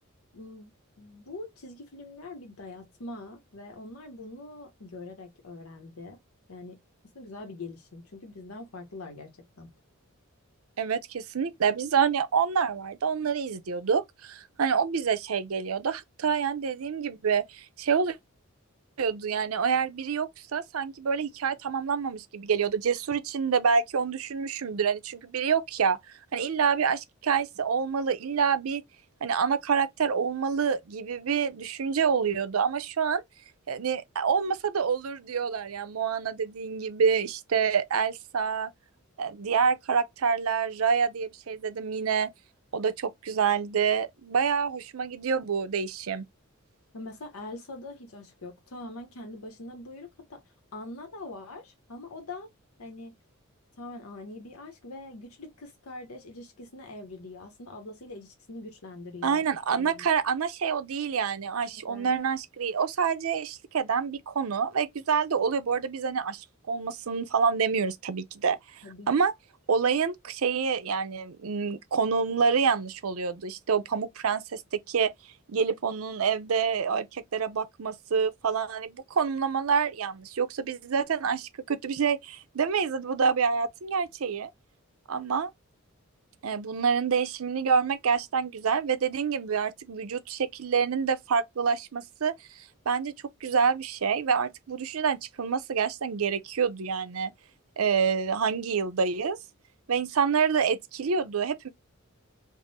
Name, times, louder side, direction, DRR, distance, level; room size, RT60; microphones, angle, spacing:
voice 1, 0.3-0.7 1.0-6.2 6.5-6.8 7.1-9.7 46.9-50.4 50.7-52.5 52.8-53.2 53.8-59.5 59.8-60.1 61.7-62.1 68.8-69.1, left 2 dB, 85° left, 0.8 m, -43 dB
voice 2, 10.8-18.2 19.0-26.0 26.3-28.8 29.2-33.2 33.7-38.7 39.2-42.3 42.7-46.2 59.2-68.6 69.1-69.3 69.7-74.6 74.9-75.1 75.5-84.5 85.1-85.5 86.4-92.3 92.9-93.1 93.4-97.3 97.8-99.4 99.9-101.7, right 6 dB, 80° right, 0.6 m, -27 dB
3.7 x 2.0 x 4.0 m
head